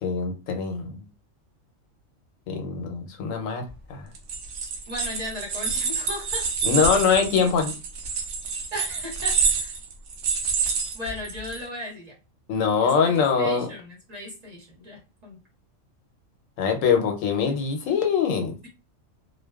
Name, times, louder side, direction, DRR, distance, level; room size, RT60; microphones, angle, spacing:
voice 1, 0.0-1.1 2.5-3.6 3.9-4.1 6.6-7.7 12.5-13.7 16.6-18.6, left 6 dB, 85° left, 4 dB, 1.0 m, -23 dB
sound 1, 4.1-11.6, right 5 dB, 70° right, 0.8 m, -27 dB
voice 2, 4.9-6.5 8.7-9.8 10.9-12.1 13.0-15.4, left 1 dB, 35° right, -3 dB, 1.0 m, -36 dB
2.5 x 2.2 x 2.3 m, 0.30 s
omnidirectional pair, 1.3 m